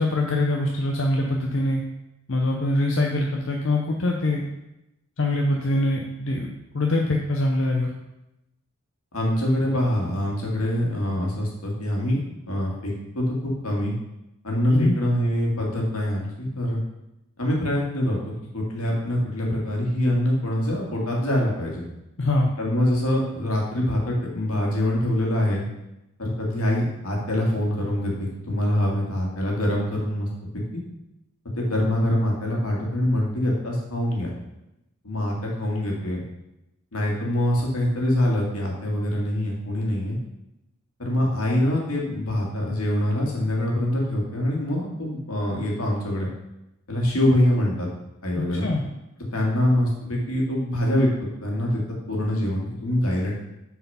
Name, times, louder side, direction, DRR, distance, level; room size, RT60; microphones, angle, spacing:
voice 1, 0.0-1.8 2.3-4.4 5.2-7.9 14.7-14.9 22.2-22.5 48.3-48.8, left 2 dB, 60° left, 1 dB, 0.7 m, -23 dB
voice 2, 9.1-12.2 12.5-13.9 14.4-16.8 17.4-18.2 18.5-21.9 22.6-25.6 26.2-30.3 30.7-30.8 31.6-34.3 35.0-36.2 36.9-40.2 41.0-46.3 46.9-47.9 48.2-48.7 49.3-51.1 51.4-51.8 52.1-53.4, left 1 dB, 80° left, -2 dB, 2.1 m, -24 dB
6.9 x 4.7 x 5.6 m, 0.90 s
head